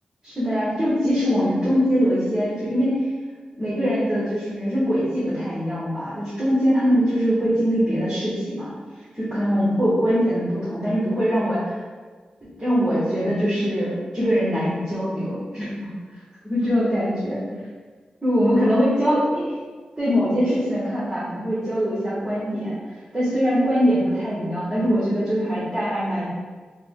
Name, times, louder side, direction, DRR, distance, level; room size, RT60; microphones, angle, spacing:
voice 1, 0.2-3.1 3.6-8.7 9.1-11.8 12.6-15.9 16.4-17.4 18.2-19.5 20.0-22.8 23.1-26.3, equal, 15° right, -11 dB, 1.1 m, -22 dB
3.4 x 2.1 x 3.6 m, 1.5 s
wide cardioid pair, 110°, 3 cm